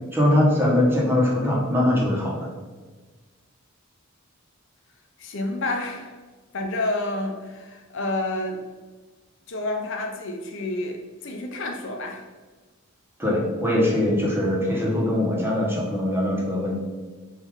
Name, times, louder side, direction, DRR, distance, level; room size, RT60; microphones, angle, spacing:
voice 1, 0.1-2.5 13.2-16.8, left 1 dB, 10° right, -4 dB, 1.0 m, -22 dB
voice 2, 5.2-6.1 6.5-8.6 9.5-12.2, left 2 dB, 60° left, 3 dB, 0.5 m, -29 dB
3.8 x 2.7 x 4.6 m, 1.4 s
head